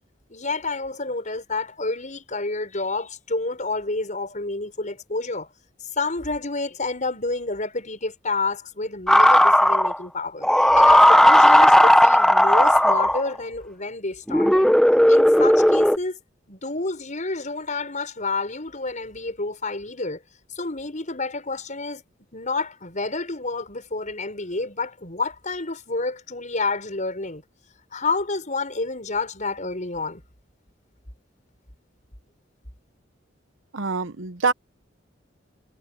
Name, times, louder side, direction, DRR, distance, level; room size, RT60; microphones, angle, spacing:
voice 1, 0.3-5.5 6.0-10.5 10.7-14.7 15.1-16.2 16.5-20.2 20.5-22.0 22.3-27.4 27.9-30.2, left 3 dB, 40° left, 6.6 m, -29 dB
sound 1, 9.1-10.0 10.4-13.4 14.3-16.0, equal, 5° left, 0.7 m, -15 dB
voice 2, 33.7-34.5, right 4 dB, 90° right, 1.0 m, -25 dB
head